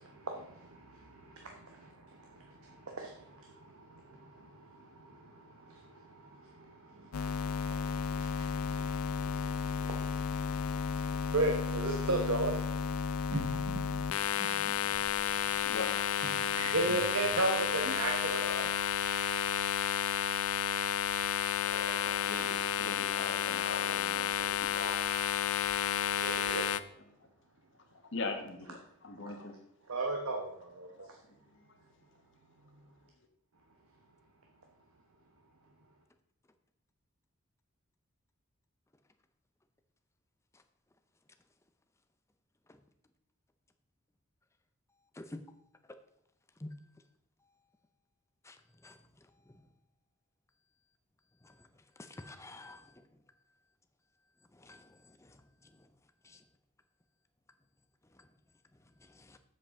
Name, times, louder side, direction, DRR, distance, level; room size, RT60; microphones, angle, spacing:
voice 1, 0.0-5.8 6.1-8.9 9.2-10.8 11.2-12.6 13.3-14.0 14.4-14.9 16.2-18.7 21.6-22.0 26.2-26.6 29.9-30.9, right 2 dB, 85° right, 2 dB, 1.1 m, -37 dB
sound 1, 7.1-26.8, left 8 dB, 85° left, 0.4 m, -32 dB
voice 2, 15.6-16.0 22.0-25.2 28.1-29.5 31.0-31.1, left 3 dB, 55° left, 5 dB, 1.2 m, -41 dB
voice 3, 52.1-52.8 54.6-54.9 55.2-55.3 56.2-56.4 59.2-59.4, left 1 dB, 15° left, 7 dB, 0.5 m, -47 dB
7.7 x 7.5 x 3.7 m, 0.80 s
head